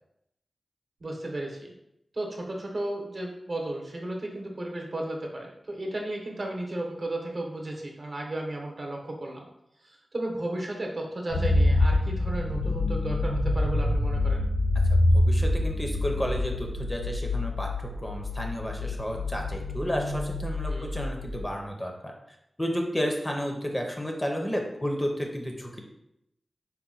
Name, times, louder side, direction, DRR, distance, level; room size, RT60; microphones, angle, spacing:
voice 1, 1.0-1.7 2.1-9.5 9.8-14.5 20.7-21.0, right 1 dB, 50° right, 0 dB, 0.8 m, -34 dB
sound 1, 11.3-21.4, left 1 dB, 80° left, 0.6 m, -26 dB
voice 2, 14.9-25.8, equal, 15° left, 1 dB, 0.5 m, -32 dB
4.1 x 2.1 x 3.8 m, 0.82 s
wide cardioid pair, 80°, 0 cm